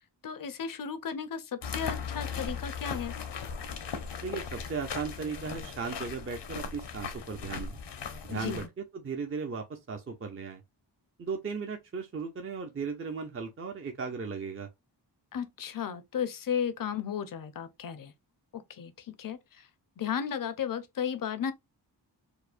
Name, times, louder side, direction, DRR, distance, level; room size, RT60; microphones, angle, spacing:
voice 1, 0.2-3.1 8.3-8.7 15.3-18.1 18.5-19.4 20.0-21.5, left 8 dB, 50° left, 0.6 m, -34 dB
sound 1, 1.6-8.7, left 6 dB, 75° left, 0.8 m, -38 dB
voice 2, 4.2-7.8 8.2-10.6 11.2-14.7, right 5 dB, 30° right, 0.5 m, -36 dB
4.7 x 2.1 x 2.4 m
wide cardioid pair, 135°, 42 cm